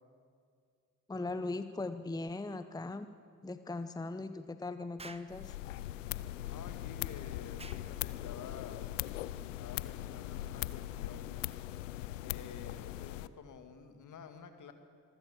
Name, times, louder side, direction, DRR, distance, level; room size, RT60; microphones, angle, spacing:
voice 1, 1.1-3.1 3.4-5.5, left 2 dB, 10° left, 11 dB, 0.8 m, -39 dB
Explosion, 5.0-5.3 7.6-7.9, right 3 dB, 15° right, 1.2 m, -49 dB
sound 1, 5.3-13.3, left 14 dB, 80° left, 0.6 m, -40 dB
voice 2, 6.5-8.9 9.6-11.3 12.2-14.7, left 7 dB, 55° left, 7 dB, 2.2 m, -50 dB
25.0 x 15.0 x 7.1 m, 2.3 s
figure-of-eight pair, 45°, 37 cm